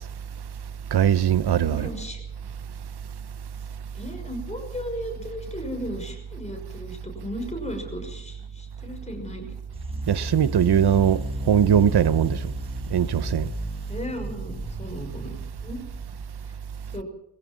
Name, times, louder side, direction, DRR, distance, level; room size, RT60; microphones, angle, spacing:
voice 1, 0.9-1.9 10.1-12.4 12.9-13.5, right 9 dB, 85° right, 0.8 m, -20 dB
voice 2, 1.5-2.2 3.9-9.5 13.9-15.8 16.5-16.6 16.9-17.0, equal, 15° left, 5.9 m, -35 dB
sound 1, 9.7-16.2, equal, 15° right, 2.1 m, -34 dB
22.5 x 16.0 x 7.4 m
wide cardioid pair, 125°, 38 cm